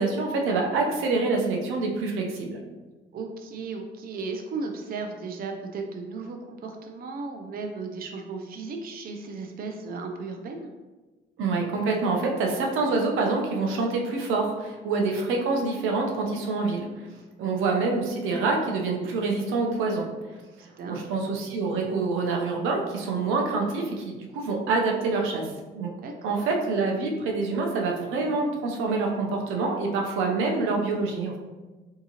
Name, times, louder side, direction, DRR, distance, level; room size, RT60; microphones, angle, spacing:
voice 1, 0.0-2.6 11.4-17.1 17.4-20.0 20.9-25.4 25.7-25.9 26.2-31.4, right 3 dB, 90° right, 1 dB, 0.6 m, -26 dB
voice 2, 3.1-10.7 20.8-21.2 26.0-26.5, right 4 dB, 50° right, 4 dB, 0.5 m, -35 dB
3.5 x 2.8 x 2.8 m, 1.2 s
cardioid pair, 90°, 20 cm